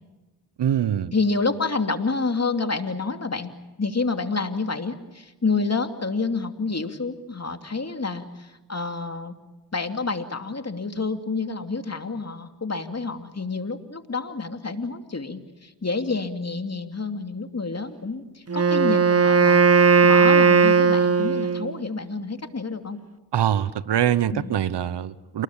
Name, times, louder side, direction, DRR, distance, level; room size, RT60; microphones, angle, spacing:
voice 1, 0.6-1.1 23.3-25.4, right 10 dB, 80° right, 17 dB, 1.0 m, -23 dB
voice 2, 1.1-3.5 3.8-9.3 9.7-23.0 24.3-24.5, left 4 dB, 40° left, 7 dB, 2.8 m, -28 dB
Wind instrument woodwind instrument, 18.5-21.8, right 5 dB, 35° right, 1.1 m, -17 dB
28.5 x 20.0 x 8.8 m, 1.2 s
cardioid pair, 45°, 40 cm